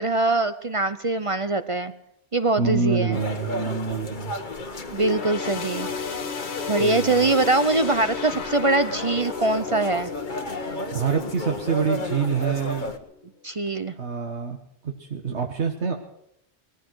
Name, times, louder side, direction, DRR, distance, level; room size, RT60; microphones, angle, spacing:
voice 1, 0.0-1.9 2.3-3.2 4.9-6.2 6.7-10.1 13.4-13.9, right 2 dB, 35° right, 11 dB, 0.7 m, -23 dB
voice 2, 2.6-4.3 6.8-7.3 10.9-12.9 14.0-14.6 14.8-15.9, right 5 dB, 80° right, 2 dB, 1.8 m, -26 dB
sound 1, 3.1-13.0, left 1 dB, 45° left, 1.5 m, -33 dB
sound 2, 4.9-12.6 13.0-13.2 14.1-14.2, left 5 dB, 75° left, 1.3 m, -34 dB
19.5 x 15.0 x 4.7 m, 0.77 s
omnidirectional pair, 1.1 m